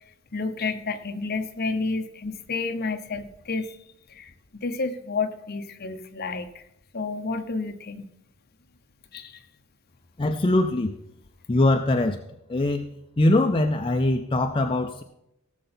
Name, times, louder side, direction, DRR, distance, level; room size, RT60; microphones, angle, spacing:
voice 1, 0.3-3.8 4.1-6.6 6.9-8.1 9.1-9.4, left 4 dB, 45° left, 8 dB, 0.8 m, -30 dB
voice 2, 10.2-11.0 11.5-12.2 12.5-15.0, left 2 dB, 25° left, 5 dB, 0.5 m, -22 dB
17.0 x 6.6 x 4.3 m, 0.83 s
head